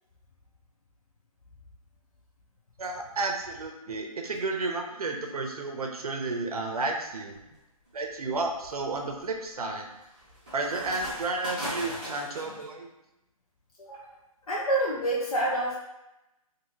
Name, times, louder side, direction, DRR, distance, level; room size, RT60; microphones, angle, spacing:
voice 1, 2.8-7.4 7.9-9.9 10.5-12.9, right 3 dB, 90° right, 3 dB, 0.6 m, -32 dB
sound 1, 7.1-7.4 8.0-12.6, equal, 15° right, 0.6 m, -39 dB
voice 2, 13.8-14.1 14.5-15.7, right 1 dB, 75° left, -4 dB, 0.7 m, -27 dB
2.7 x 2.7 x 2.9 m, 0.92 s
hypercardioid pair, 175°, 19 cm